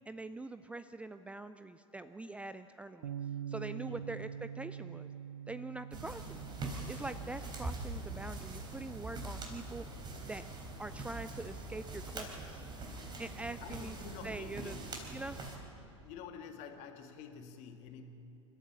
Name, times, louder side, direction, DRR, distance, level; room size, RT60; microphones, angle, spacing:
voice 1, 0.1-3.1 3.5-5.1 5.5-6.4 6.9-9.9 10.3-10.4 10.8-12.6 13.2-14.0 14.2-14.8 15.1-15.4, right 2 dB, 10° right, 12 dB, 0.5 m, -44 dB
Bass guitar, 3.0-9.3, right 8 dB, 65° right, 0.7 m, -45 dB
sound 1, 5.9-15.6, right 2 dB, 25° right, 4.0 m, -43 dB
voice 2, 13.6-14.8 16.0-18.0, left 6 dB, 45° left, 5 dB, 2.0 m, -48 dB
28.0 x 13.5 x 7.1 m, 2.9 s
figure-of-eight pair, 80°, 16 cm